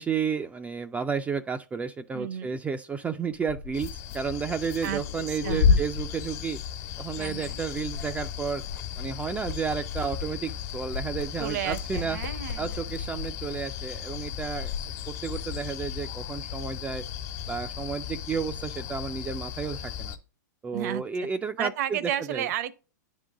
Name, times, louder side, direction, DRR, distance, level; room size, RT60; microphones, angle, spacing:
voice 1, 0.0-6.6 7.0-8.6 9.0-12.2 12.6-14.7 15.1-17.0 17.5-20.2 20.6-22.5, right 6 dB, 15° right, 0.4 m, -32 dB
voice 2, 2.1-2.6 4.8-5.0 5.3-5.8 7.2-7.6 11.4-12.8 20.7-21.0 21.6-22.7, right 11 dB, 60° right, 0.8 m, -32 dB
Liquid, 3.3-7.0 7.3-14.9, left 6 dB, 75° left, 1.2 m, -31 dB
sound 1, 3.7-20.2, left 10 dB, 50° left, 1.3 m, -37 dB
9.8 x 3.8 x 3.5 m
hypercardioid pair, 120°, 10 cm